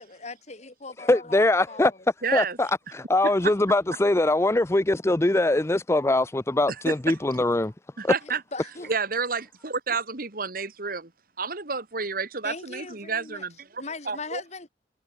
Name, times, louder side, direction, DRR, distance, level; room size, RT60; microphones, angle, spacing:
voice 1, 0.0-2.0 8.2-8.9 12.4-13.4 13.8-14.7, left 3 dB, 40° left, 2.7 m, -39 dB
voice 2, 1.0-1.9 2.3-7.7 8.0-8.1, left 2 dB, 15° left, 0.5 m, -22 dB
voice 3, 2.2-2.6 3.2-3.5 6.9-7.2 8.0-8.4 8.9-11.1 11.4-14.4, right 5 dB, 55° right, 2.2 m, -30 dB
head